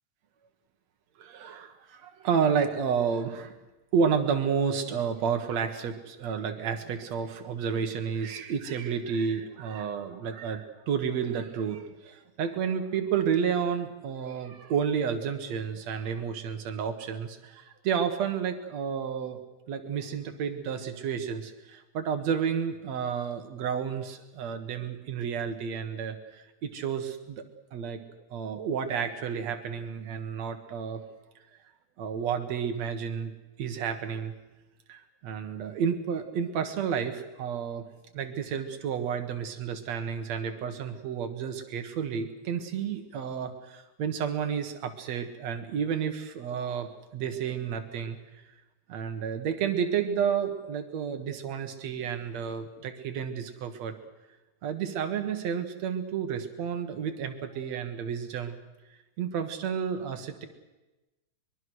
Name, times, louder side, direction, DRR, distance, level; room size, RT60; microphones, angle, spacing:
voice 1, 1.2-3.6 3.9-19.4 19.7-27.4 27.7-28.0 28.3-31.0 32.0-33.3 33.6-34.3 34.9-37.8 38.1-48.2 48.9-53.9 54.6-58.6 59.2-60.5, right 7 dB, 65° right, 6 dB, 2.7 m, -31 dB
23.5 x 22.0 x 6.4 m, 1.1 s
omnidirectional pair, 3.4 m